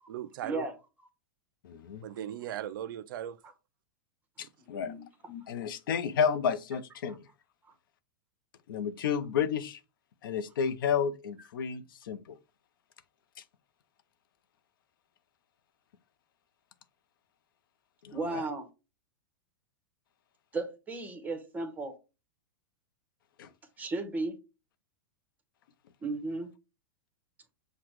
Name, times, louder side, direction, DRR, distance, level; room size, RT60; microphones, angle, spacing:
voice 1, 0.1-0.7 2.0-3.4 4.4-4.5, right 11 dB, 70° right, 0.4 m, -38 dB
voice 2, 1.6-2.1 4.4-4.9 5.5-7.2 8.7-9.8 10.2-12.4 18.0-18.4 23.4-23.5, left 7 dB, 75° left, 0.6 m, -31 dB
voice 3, 4.8-5.4 18.1-18.7 20.5-21.9 23.8-24.4 26.0-26.5, right 2 dB, 15° right, 1.0 m, -35 dB
5.8 x 2.2 x 3.0 m
hypercardioid pair, 115°, 12 cm